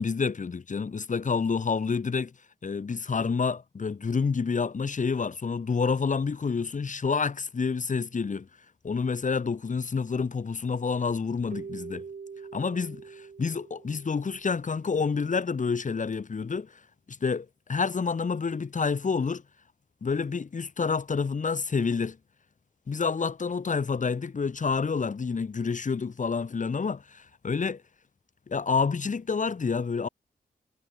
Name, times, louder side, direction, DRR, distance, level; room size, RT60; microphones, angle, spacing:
voice 1, 0.0-2.3 2.6-8.5 8.8-12.0 12.5-16.8 17.1-19.4 20.0-22.2 22.9-27.8 28.5-30.1, left 5 dB, 50° left, 4.5 m, -28 dB
Keyboard (musical), 11.5-14.8, right 5 dB, 55° right, 7.9 m, -43 dB
wide cardioid pair, 110°, 16 cm